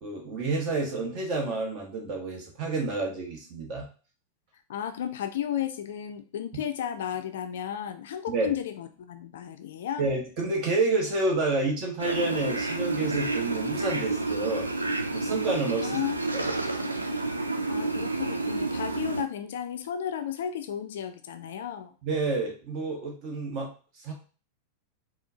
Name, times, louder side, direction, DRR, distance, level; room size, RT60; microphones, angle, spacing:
voice 1, 0.0-3.9 8.3-8.5 10.0-15.9 16.3-16.5 22.0-24.1, right 3 dB, 40° right, 0 dB, 1.3 m, -29 dB
voice 2, 4.7-10.0 15.8-16.2 17.7-21.9, left 9 dB, 60° left, 8 dB, 0.4 m, -33 dB
sound 1, 12.0-19.2, right 2 dB, 80° right, 0.4 m, -30 dB
4.3 x 2.4 x 2.7 m, 0.37 s
figure-of-eight pair, 90°, 0 cm